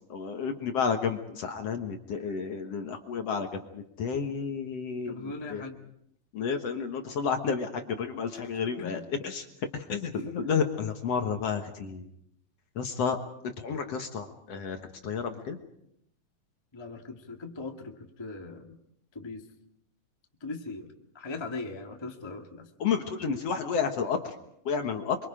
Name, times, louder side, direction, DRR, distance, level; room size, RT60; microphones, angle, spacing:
voice 1, 0.1-5.6 6.3-9.4 9.7-12.1 12.8-13.2 13.4-15.6 22.8-24.3 24.7-25.2, left 6 dB, 55° left, 5 dB, 2.0 m, -31 dB
voice 2, 5.1-5.8 8.3-9.1 16.7-18.8 19.1-19.5 20.4-22.7, left 3 dB, 15° left, 2 dB, 1.0 m, -40 dB
28.0 x 24.0 x 5.1 m, 0.76 s
omnidirectional pair, 4.0 m